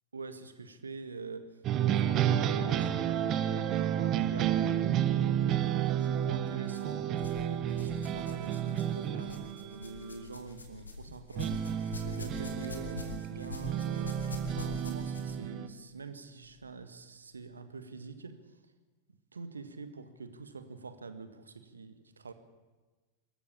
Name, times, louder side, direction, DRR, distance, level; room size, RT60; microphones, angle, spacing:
voice 1, 0.1-4.6 5.0-7.1 7.5-11.6 11.9-14.2 14.5-18.5 19.3-22.3, right 4 dB, 75° right, 10 dB, 1.8 m, -45 dB
sound 1, 1.6-10.1 11.4-15.7, right 10 dB, 35° right, 1.2 m, -31 dB
sound 2, 5.7-5.9 6.7-7.4 7.7-15.5 16.4-16.5 17.3-17.4, left 5 dB, 75° left, 2.8 m, -45 dB
25.5 x 14.0 x 7.2 m, 1.2 s
figure-of-eight pair, 90°, 0 cm